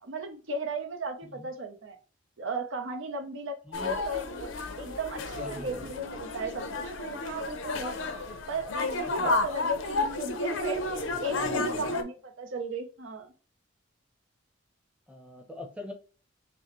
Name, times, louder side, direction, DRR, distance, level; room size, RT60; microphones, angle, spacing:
voice 1, 0.0-2.0 2.4-4.5 4.8-8.0 8.5-13.3, right 2 dB, 80° right, 6 dB, 0.7 m, -35 dB
sound 1, 3.7-12.0, left 2 dB, 85° left, 0.7 m, -32 dB
voice 2, 3.7-4.0 5.4-5.9 9.2-9.3 11.4-11.9 15.1-15.9, left 1 dB, 5° right, 3 dB, 0.7 m, -42 dB
5.2 x 2.1 x 3.0 m, 0.37 s
head